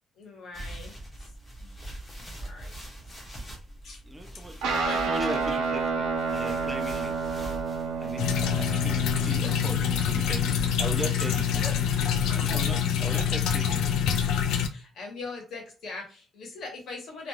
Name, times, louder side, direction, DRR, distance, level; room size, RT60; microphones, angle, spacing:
voice 1, 0.2-1.3 1.6-1.8 2.3-2.8 3.1-3.2 3.8-4.0 4.3-5.1 9.5-9.6 11.5-11.8 13.1-13.2 14.1-17.3, left 3 dB, 50° left, 1 dB, 1.1 m, -42 dB
sound 1, 0.5-13.8, right 1 dB, 10° left, 0.8 m, -43 dB
voice 2, 4.1-4.6 5.1-7.1 8.0-10.5 10.8-11.5 12.3-13.9, right 1 dB, 10° right, 4 dB, 0.4 m, -38 dB
Guitar, 4.6-13.4, right 5 dB, 85° right, 0.6 m, -32 dB
sound 2, 8.2-14.7, left 8 dB, 80° left, 0.4 m, -26 dB
2.5 x 2.3 x 3.0 m, 0.35 s
cardioid pair, 170°, 0 cm